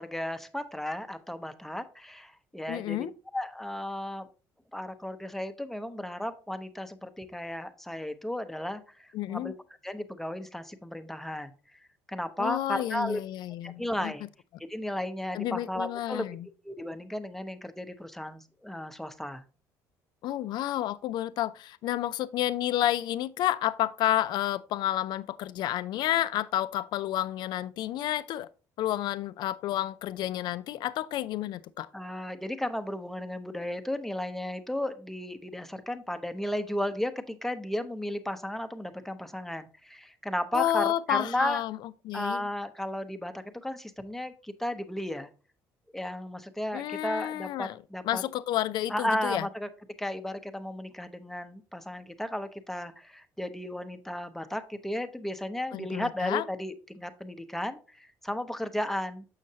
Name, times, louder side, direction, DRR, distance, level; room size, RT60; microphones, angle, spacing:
voice 1, 0.0-3.1 3.3-4.3 4.7-9.5 9.8-11.5 12.1-13.2 13.6-14.3 14.7-16.2 16.6-19.4 31.9-41.6 42.1-45.3 45.9-48.2 48.9-49.7 50.0-59.2, left 1 dB, 5° left, 0.7 m, -34 dB
voice 2, 2.7-3.1 9.1-9.5 12.4-14.1 15.3-16.5 20.2-28.5 28.8-31.9 40.5-41.8 42.1-42.5 46.7-47.8 48.0-49.5 55.7-56.4, left 13 dB, 65° left, 0.4 m, -30 dB
6.5 x 6.3 x 2.7 m
cardioid pair, 100°, 8 cm